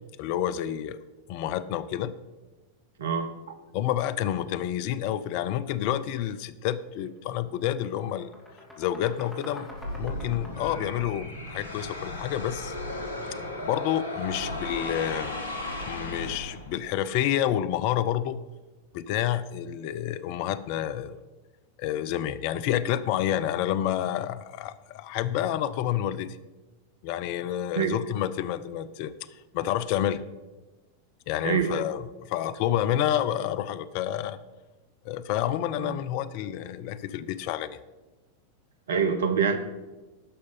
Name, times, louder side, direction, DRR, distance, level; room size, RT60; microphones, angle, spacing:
voice 1, 0.2-1.0 1.3-2.1 3.7-8.3 8.8-9.7 9.9-12.7 13.6-15.4 15.9-18.4 18.9-21.2 21.8-26.4 27.0-29.1 29.5-30.2 31.3-32.0 32.3-34.4 35.1-37.8, left 11 dB, 45° left, 15 dB, 0.5 m, -29 dB
voice 2, 3.0-3.6 27.7-28.0 31.4-31.9 35.8-36.0 38.9-39.6, right 6 dB, 65° right, 9 dB, 0.9 m, -26 dB
sound 1, 6.9-7.1 7.4-12.4, left 1 dB, ahead, 2.5 m, -47 dB
sound 2, 9.7-16.9, left 1 dB, 75° left, 1.2 m, -35 dB
11.0 x 6.5 x 5.5 m, 1.2 s
figure-of-eight pair, 90°, 0 cm